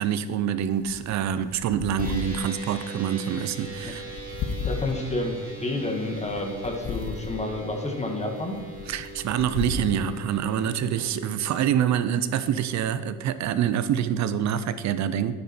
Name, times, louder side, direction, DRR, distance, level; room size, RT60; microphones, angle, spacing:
voice 1, 0.0-4.0 8.9-15.3, right 9 dB, 55° right, 13 dB, 0.8 m, -26 dB
sound 1, 0.6-11.1, left 6 dB, 50° left, 0.8 m, -37 dB
sound 2, 2.0-13.1, right 2 dB, 25° right, 2.8 m, -41 dB
voice 2, 4.6-5.3 5.6-8.6, left 2 dB, 20° left, 3 dB, 1.8 m, -29 dB
9.6 x 8.8 x 4.5 m, 1.4 s
cardioid pair, 100°, 32 cm